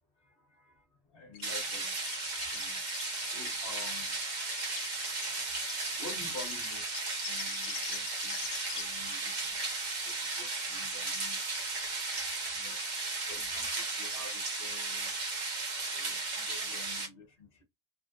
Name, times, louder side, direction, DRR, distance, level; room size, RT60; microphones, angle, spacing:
voice 1, 0.3-0.7 1.1-1.9 2.5-2.8 3.3-4.1 6.0-6.9 7.3-8.4 8.7-9.6 10.0-11.4 12.5-12.8 13.3-15.1 15.9-17.6, left 3 dB, 55° left, 1.2 m, -49 dB
sound 1, 1.3-8.8, left 8 dB, 80° left, 0.9 m, -44 dB
sound 2, 1.4-17.1, right 3 dB, 45° right, 1.0 m, -35 dB
3.6 x 2.4 x 2.4 m
omnidirectional pair, 1.1 m